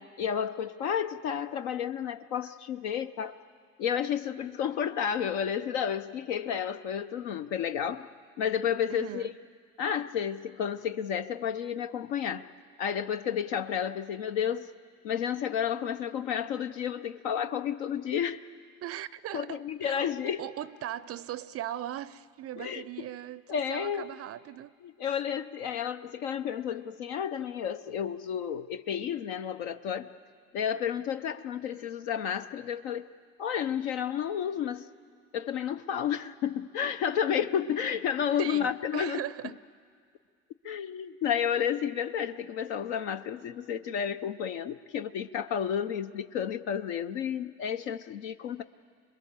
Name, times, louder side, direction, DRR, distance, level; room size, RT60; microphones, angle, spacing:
voice 1, 0.0-3.4 3.8-8.1 8.4-9.3 9.8-12.4 12.8-14.7 15.0-18.4 19.3-20.4 22.6-23.1 23.5-24.0 24.8-30.1 30.5-33.1 33.4-34.9 35.3-39.2 40.6-48.6, left 8 dB, 65° left, 0.8 m, -31 dB
voice 2, 8.9-9.4 18.8-20.1 20.4-24.7 38.4-39.6, right 12 dB, 40° right, 0.5 m, -39 dB
27.0 x 21.5 x 7.4 m
hypercardioid pair, 65°, 38 cm